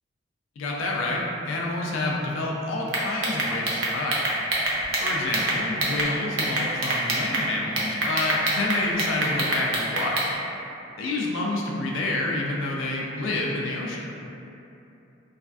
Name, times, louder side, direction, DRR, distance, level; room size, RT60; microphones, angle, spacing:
voice 1, 0.6-4.3 5.0-10.3 11.0-14.1, left 2 dB, 75° left, -1 dB, 0.3 m, -28 dB
sound 1, 2.9-6.1 6.4-7.4 7.8-10.3, right 2 dB, 80° right, 0.5 m, -25 dB
3.2 x 2.3 x 2.3 m, 2.8 s
head